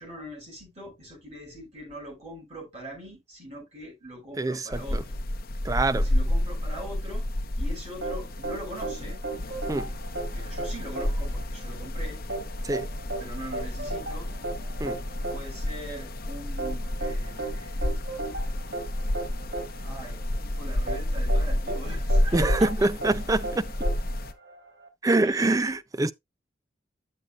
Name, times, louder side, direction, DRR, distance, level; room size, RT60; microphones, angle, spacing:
voice 1, 0.0-5.2 5.9-7.3 7.6-9.2 10.3-12.2 13.2-14.3 15.3-17.8 19.8-22.9 25.2-25.8, right 1 dB, 35° right, 6.1 m, -42 dB
voice 2, 4.4-5.0 5.6-6.0 9.7-9.9 12.6-12.9 14.8-15.0 22.3-23.7 25.0-26.1, right 2 dB, 20° right, 0.4 m, -25 dB
sound 1, 4.7-24.3, left 1 dB, 50° left, 0.8 m, -30 dB
sound 2, 8.0-24.9, right 2 dB, 70° right, 2.8 m, -36 dB
8.6 x 8.0 x 2.4 m
head